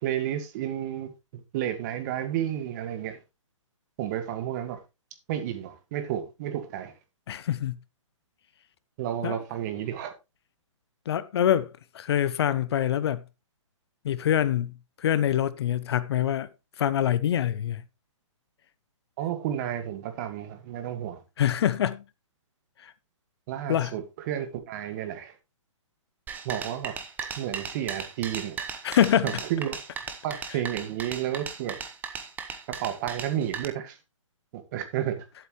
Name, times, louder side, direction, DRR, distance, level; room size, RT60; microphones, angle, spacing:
voice 1, 0.0-3.2 4.0-4.8 5.3-6.9 9.0-10.1 19.2-21.2 23.5-25.3 26.4-27.0 27.4-28.8 29.2-29.8 30.2-31.8 32.7-34.0 34.5-35.2, right 11 dB, 35° right, 1.7 m, -31 dB
voice 2, 7.3-7.8 9.2-9.4 11.1-13.2 14.0-16.5 16.8-17.8 21.4-22.0 22.8-22.9 23.7-24.0 28.8-29.4, left 10 dB, 50° left, 0.7 m, -25 dB
sound 1, 26.3-33.6, right 6 dB, 10° right, 0.9 m, -36 dB
11.5 x 7.9 x 3.1 m
hypercardioid pair, 150°, 17 cm